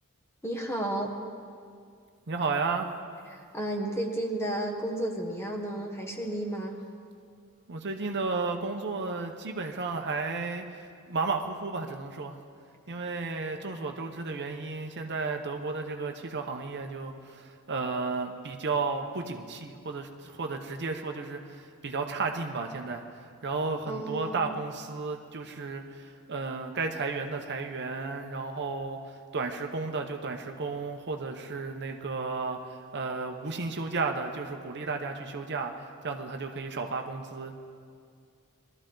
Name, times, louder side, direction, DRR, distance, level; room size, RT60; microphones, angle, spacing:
voice 1, 0.4-1.1 3.3-6.8 23.8-24.5, right 1 dB, 10° left, 2 dB, 1.2 m, -32 dB
voice 2, 2.3-2.9 7.7-12.4 12.9-37.5, right 4 dB, 50° right, 4 dB, 0.8 m, -33 dB
21.5 x 13.0 x 3.8 m, 2.3 s
head